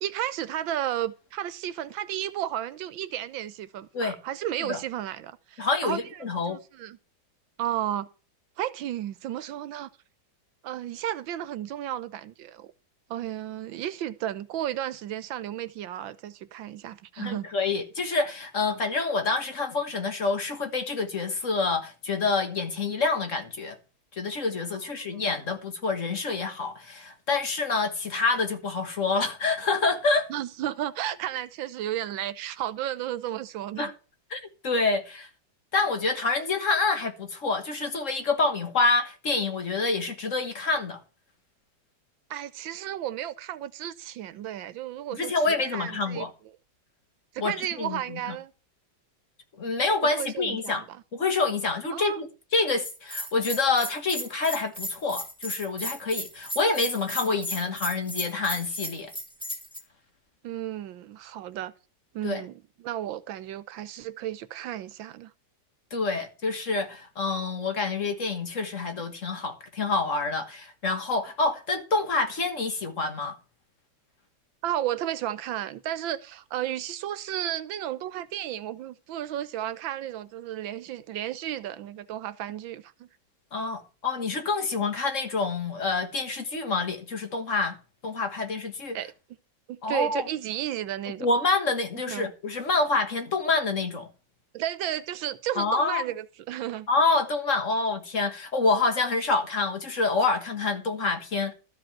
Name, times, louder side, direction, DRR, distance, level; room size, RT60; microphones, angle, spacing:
voice 1, 0.0-7.0 7.6-8.1 8.6-9.9 10.6-12.7 13.1-17.5 25.1-25.3 30.3-33.9 42.3-46.3 47.3-48.5 50.2-51.0 51.9-52.2 60.4-61.7 62.1-65.3 74.6-83.1 88.9-89.1 89.7-91.3 92.1-92.3 94.5-96.9, right 12 dB, 85° right, 1.5 m, -33 dB
voice 2, 5.6-6.6 17.2-23.8 24.2-30.3 33.8-33.9 34.3-35.3 35.7-41.0 45.2-46.3 47.4-48.4 49.6-50.8 51.1-52.3 52.5-59.1 62.2-62.4 65.9-73.4 83.5-87.8 88.0-89.0 89.8-90.2 91.2-94.1 95.6-96.0 96.9-101.5, left 3 dB, 40° left, 1.7 m, -27 dB
Bell, 52.8-59.8, equal, 5° left, 2.0 m, -35 dB
13.0 x 5.1 x 7.3 m
omnidirectional pair, 2.1 m